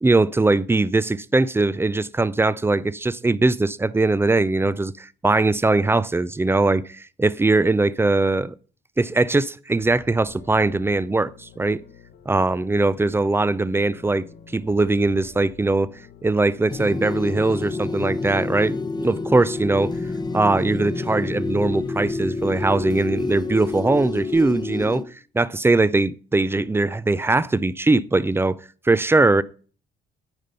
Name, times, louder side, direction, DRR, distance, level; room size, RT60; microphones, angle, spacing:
voice 1, 0.0-8.5 9.0-11.8 12.3-14.2 14.5-15.9 16.2-19.9 20.3-25.0 25.3-28.6 28.8-29.4, right 2 dB, 10° right, 0.4 m, -21 dB
sound 1, 9.7-19.3, left 5 dB, 60° left, 1.0 m, -48 dB
sound 2, 16.7-25.0, left 3 dB, 20° left, 0.8 m, -28 dB
9.1 x 5.1 x 5.5 m
cardioid pair, 90°, 20 cm